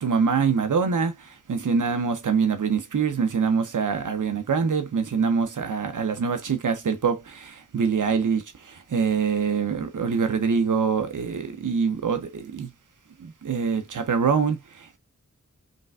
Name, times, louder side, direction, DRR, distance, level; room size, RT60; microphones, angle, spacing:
voice 1, 0.0-12.7 13.2-15.0, right 5 dB, 85° right, 0.7 m, -25 dB
5.1 x 3.3 x 2.2 m
wide cardioid pair, 65°, 30 cm